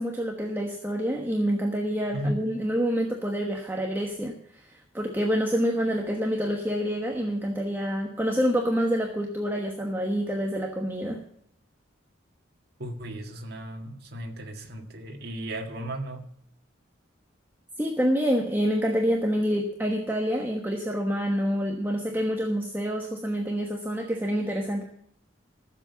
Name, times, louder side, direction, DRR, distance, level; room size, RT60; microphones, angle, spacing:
voice 1, 0.0-4.3 4.6-11.2 17.8-24.8, equal, 10° right, 1 dB, 1.2 m, -27 dB
voice 2, 12.8-16.3, right 1 dB, 50° right, 1 dB, 1.8 m, -35 dB
15.0 x 7.5 x 7.0 m, 0.70 s
head